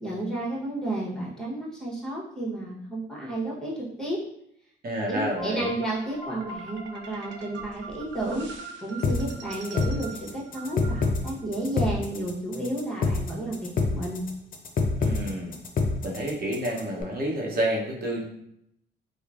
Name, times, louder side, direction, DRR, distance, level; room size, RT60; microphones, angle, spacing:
voice 1, 0.0-4.2 5.1-8.5 8.8-14.3, right 1 dB, 5° left, -4 dB, 1.0 m, -32 dB
voice 2, 4.8-5.7 15.0-15.6 16.0-18.2, right 1 dB, 50° right, -2 dB, 0.9 m, -29 dB
sound 1, 5.4-11.5, right 2 dB, 70° right, 0.5 m, -42 dB
sound 2, 9.0-17.0, left 3 dB, 45° left, 0.5 m, -27 dB
3.0 x 2.1 x 2.5 m, 0.74 s
cardioid pair, 90°, 20 cm